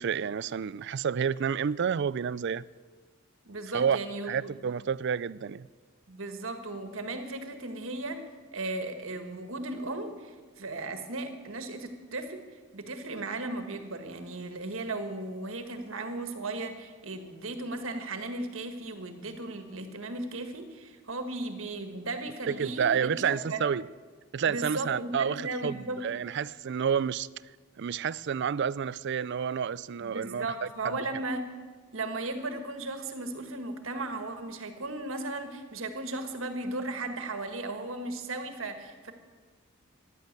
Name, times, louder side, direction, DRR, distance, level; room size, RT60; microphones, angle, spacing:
voice 1, 0.0-2.6 3.7-4.0 4.3-5.7 22.5-23.8 24.3-25.8 26.0-27.3 27.8-31.0, right 7 dB, 55° right, 0.4 m, -29 dB
voice 2, 3.5-4.5 6.1-8.2 8.5-12.5 12.7-23.6 24.5-26.0 30.0-31.5 31.9-39.1, right 2 dB, 75° right, 1.7 m, -36 dB
14.5 x 11.0 x 8.2 m
head